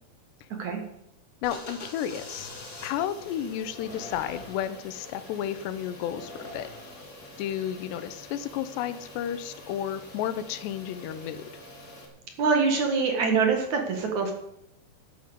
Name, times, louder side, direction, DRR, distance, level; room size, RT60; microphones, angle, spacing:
voice 1, 1.4-2.5 2.8-6.7 7.4-11.4, left 10 dB, 90° left, 13 dB, 3.1 m, -32 dB
sound 1, 1.4-12.0, left 1 dB, 25° left, 3.0 m, -44 dB
voice 2, 12.4-14.3, right 5 dB, 55° right, 4 dB, 2.7 m, -24 dB
13.0 x 9.5 x 8.1 m, 0.79 s
omnidirectional pair, 4.8 m